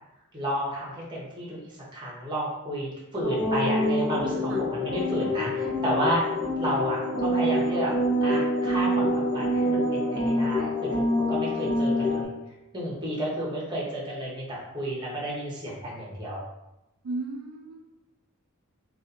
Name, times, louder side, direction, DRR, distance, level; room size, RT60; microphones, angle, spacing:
voice 1, 0.3-1.6 1.9-6.2 6.6-7.9 8.2-9.1 9.3-11.0 11.3-12.3 12.7-16.4, equal, 20° right, -5 dB, 0.7 m, -31 dB
sound 1, 3.2-12.3, equal, 45° left, 0.7 m, -26 dB
voice 2, 17.0-18.0, right 2 dB, 70° right, 1 dB, 0.4 m, -36 dB
2.7 x 2.4 x 2.4 m, 0.91 s
head